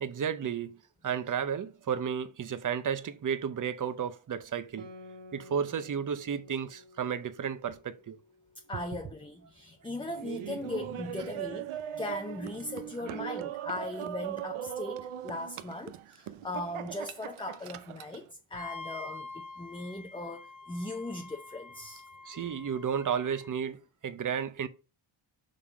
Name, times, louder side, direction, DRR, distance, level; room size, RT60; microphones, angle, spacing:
voice 1, 0.0-4.9 5.3-8.2 8.7-8.8 13.0-13.2 22.3-23.8 24.0-24.7, right 7 dB, 40° right, 0.7 m, -33 dB
Guitar, 4.8-9.7, left 1 dB, 55° right, 1.0 m, -53 dB
voice 2, 8.7-22.0, left 2 dB, 10° left, 0.6 m, -39 dB
Laughter, 10.1-18.2, right 11 dB, 85° right, 0.7 m, -39 dB
Wind instrument woodwind instrument, 18.5-23.5, left 3 dB, 35° left, 1.3 m, -46 dB
6.7 x 3.7 x 4.9 m
wide cardioid pair, 130°, 49 cm